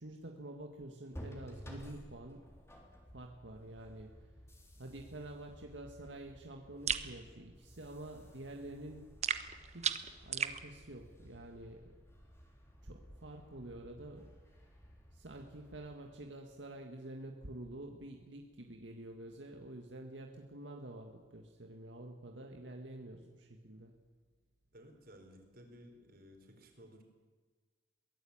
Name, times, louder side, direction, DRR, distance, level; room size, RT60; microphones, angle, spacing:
voice 1, 0.0-2.4 3.1-4.2 4.8-9.1 9.7-11.9 12.8-14.3 15.1-23.9, right 1 dB, 85° right, 3 dB, 1.8 m, -48 dB
sound 1, 1.1-16.8, equal, 15° left, 3.6 m, -55 dB
sound 2, 6.9-7.1 9.2-10.6, right 7 dB, 40° right, 1.1 m, -35 dB
voice 2, 24.7-27.0, equal, 55° right, 4 dB, 4.5 m, -57 dB
23.0 x 16.5 x 8.8 m, 1.4 s
head